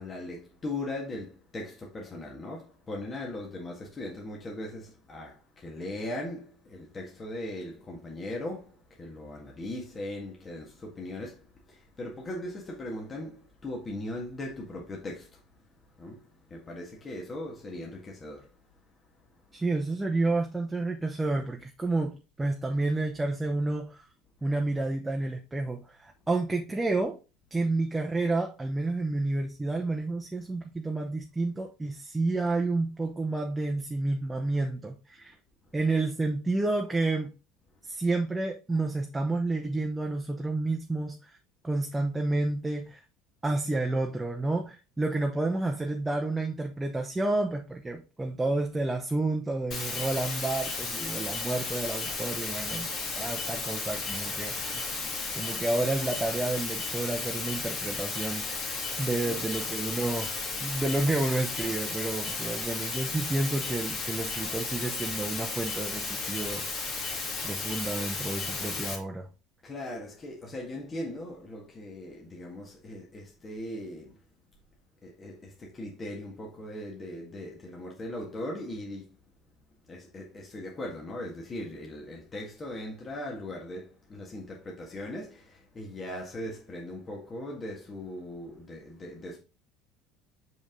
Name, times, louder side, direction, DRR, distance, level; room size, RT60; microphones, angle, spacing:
voice 1, 0.0-15.4 16.0-18.5 59.2-59.4 62.4-62.6 69.6-74.1 75.0-79.1 79.9-89.4, left 1 dB, 30° left, 1.7 m, -39 dB
voice 2, 19.5-24.0 24.4-27.2 27.5-35.3 35.7-37.3 37.8-41.4 41.6-43.0 43.4-52.9 53.1-55.0 55.3-60.3 60.6-67.2 67.4-69.3, right 2 dB, 15° right, 0.9 m, -30 dB
sound 1, 49.7-69.0, left 4 dB, 50° left, 2.3 m, -34 dB
5.3 x 5.2 x 3.8 m
hypercardioid pair, 75°, 0 cm